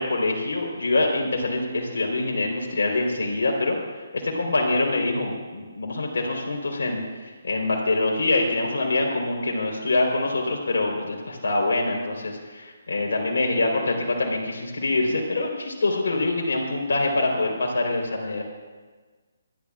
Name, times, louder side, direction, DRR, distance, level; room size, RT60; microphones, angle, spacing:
voice 1, 0.0-3.8 4.1-7.0 7.4-18.4, left 2 dB, 75° left, 1 dB, 4.0 m, -25 dB
27.5 x 12.0 x 2.5 m, 1.4 s
hypercardioid pair, 150°, 0 cm